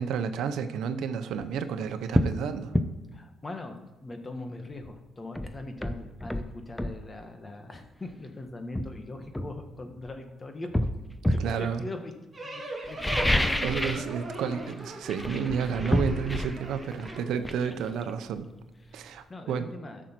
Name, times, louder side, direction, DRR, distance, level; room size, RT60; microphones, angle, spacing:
voice 1, 0.0-2.7 11.4-11.8 13.6-18.5 18.9-19.7, right 7 dB, 80° right, 10 dB, 0.7 m, -31 dB
sound 1, 1.3-1.5 2.1-2.4 2.7-2.9 4.8-4.9 5.4-7.0 8.1-8.2 8.7-10.1 10.7-11.5 12.8-14.1 14.4-14.7 15.0-18.6 18.9-19.0, left 1 dB, 10° left, 0.8 m, -29 dB
voice 2, 3.1-10.8 11.3-12.1 12.4-13.0 13.8-14.0 18.8-20.0, left 2 dB, 25° left, 5 dB, 1.5 m, -41 dB
sound 2, 12.3-17.2, right 2 dB, 25° right, 2.7 m, -39 dB
13.0 x 6.3 x 4.6 m, 1.1 s
cardioid pair, 90°, 0 cm